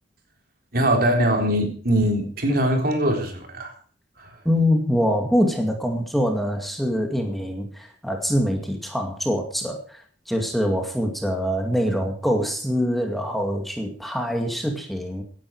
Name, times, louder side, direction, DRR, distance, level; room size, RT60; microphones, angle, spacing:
voice 1, 0.7-3.7 4.2-4.4, right 1 dB, 55° right, 3 dB, 3.7 m, -22 dB
voice 2, 4.4-15.2, equal, ahead, 2 dB, 2.2 m, -24 dB
17.0 x 11.0 x 4.8 m, 0.43 s
head